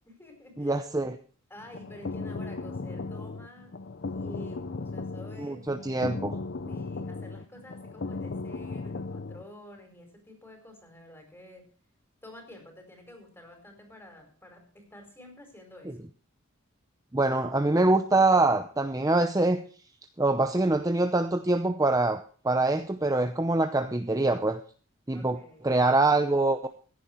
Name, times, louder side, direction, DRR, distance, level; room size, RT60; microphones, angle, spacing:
voice 1, 0.1-1.1 1.5-3.7 4.1-5.6 6.7-11.6 12.2-16.0 25.1-25.7, left 1 dB, 10° left, 3 dB, 4.6 m, -49 dB
voice 2, 0.6-1.1 5.4-6.4 17.1-19.6 20.2-24.6 25.1-25.4 25.6-26.7, right 2 dB, 15° right, 7 dB, 0.7 m, -24 dB
sound 1, 1.6-9.4, left 3 dB, 55° left, 0.7 m, -36 dB
15.5 x 11.0 x 4.6 m, 0.42 s
head